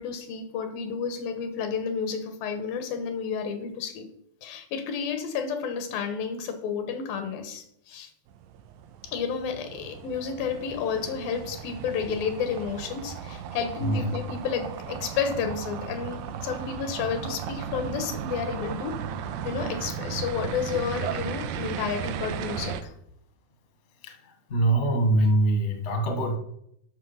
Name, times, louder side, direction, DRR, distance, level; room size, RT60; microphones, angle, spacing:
voice 1, 0.0-4.1 4.4-8.1 9.0-19.0 19.4-22.9, left 6 dB, 80° left, 7 dB, 2.8 m, -31 dB
sound 1, 8.3-22.8, right 8 dB, 80° right, 1.9 m, -36 dB
voice 2, 13.8-14.1 24.0-24.1 24.5-26.4, right 1 dB, 40° left, 3 dB, 1.0 m, -23 dB
11.5 x 6.1 x 5.6 m, 0.74 s
omnidirectional pair, 4.2 m